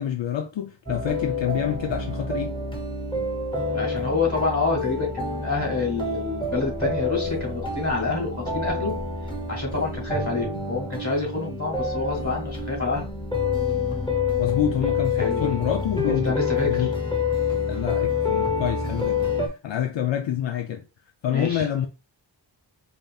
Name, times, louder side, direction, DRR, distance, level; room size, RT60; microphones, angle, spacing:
voice 1, 0.0-2.5 14.4-16.4 16.6-16.9 17.7-20.8 21.2-21.9, left 10 dB, 75° left, 0.6 m, -27 dB
sound 1, 0.9-19.5, left 4 dB, 10° left, 0.9 m, -27 dB
voice 2, 3.7-9.0 9.5-13.1 15.2-15.5 16.0-16.9 21.3-21.7, left 4 dB, 40° left, 2.1 m, -27 dB
5.0 x 2.7 x 2.3 m
wide cardioid pair, 55°, 44 cm